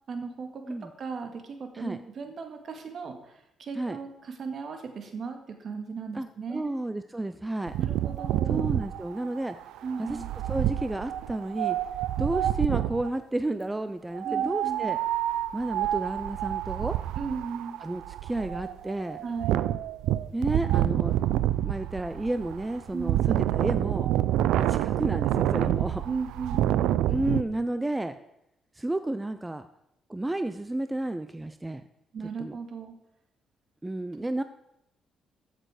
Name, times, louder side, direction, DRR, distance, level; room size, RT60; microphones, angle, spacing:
voice 1, 0.1-0.6 1.0-6.7 7.8-8.7 9.8-10.3 14.2-15.0 17.2-17.8 19.2-19.6 22.9-23.2 26.0-26.9 32.1-33.0, right 5 dB, 55° right, 5 dB, 1.9 m, -36 dB
voice 2, 6.1-7.8 8.5-9.6 10.0-10.2 10.5-11.8 12.2-15.0 15.5-17.0 17.8-19.2 20.3-21.2 21.6-24.1 24.5-26.0 27.1-28.2 28.8-29.7 30.1-31.8 32.4-32.6 33.8-34.4, right 1 dB, 15° right, 10 dB, 0.5 m, -31 dB
Wind, 7.7-13.1 14.1-27.4, right 13 dB, 90° right, 0.4 m, -28 dB
14.0 x 6.7 x 4.9 m, 0.83 s
cardioid pair, 90°, 0 cm